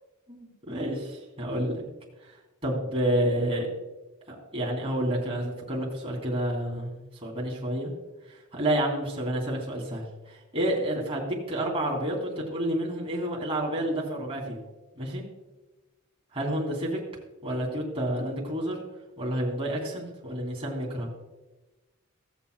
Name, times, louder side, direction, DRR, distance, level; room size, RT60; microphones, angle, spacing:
voice 1, 0.3-1.8 2.3-2.4 2.6-3.7 4.3-7.9 8.3-14.6 14.9-15.2 16.3-17.0 17.4-18.8 19.2-21.1, right 1 dB, 25° right, -2 dB, 2.8 m, -29 dB
17.5 x 7.2 x 2.3 m, 1.1 s
head